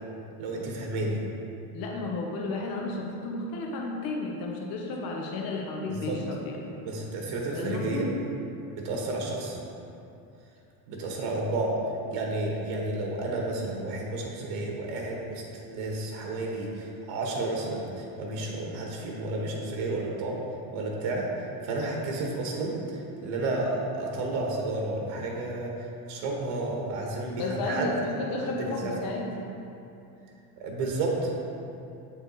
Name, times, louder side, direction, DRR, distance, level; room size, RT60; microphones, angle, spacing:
voice 1, 0.4-1.2 5.9-6.2 6.8-8.0 8.7-9.6 10.9-11.8 12.1-15.4 15.7-20.4 20.7-21.3 21.6-27.9 28.4-28.6 28.8-28.9 30.6-31.4, right 2 dB, 70° right, -1 dB, 1.3 m, -31 dB
voice 2, 1.7-6.7 7.5-8.1 27.4-29.3, left 2 dB, 50° left, -1 dB, 1.0 m, -32 dB
8.0 x 4.4 x 4.0 m, 2.8 s
cardioid pair, 135°, 44 cm